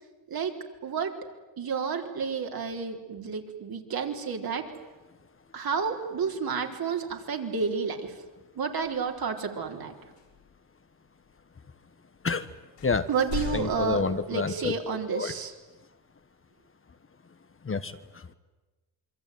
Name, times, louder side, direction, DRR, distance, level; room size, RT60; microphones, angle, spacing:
voice 1, 0.8-1.1 1.6-4.7 5.5-8.2 8.5-9.9 13.1-14.0 14.3-15.5, right 6 dB, 55° right, 2 dB, 4.2 m, -30 dB
sound 1, 8.8-9.1 10.2-10.6 11.2-11.3 12.2-12.3 12.8-14.7, left 7 dB, 80° left, 5.9 m, -38 dB
voice 2, 13.5-14.7 15.1-15.3 17.6-18.3, left 4 dB, 30° left, 11 dB, 1.4 m, -29 dB
27.0 x 23.5 x 9.4 m, 1.2 s
cardioid pair, 95°, 42 cm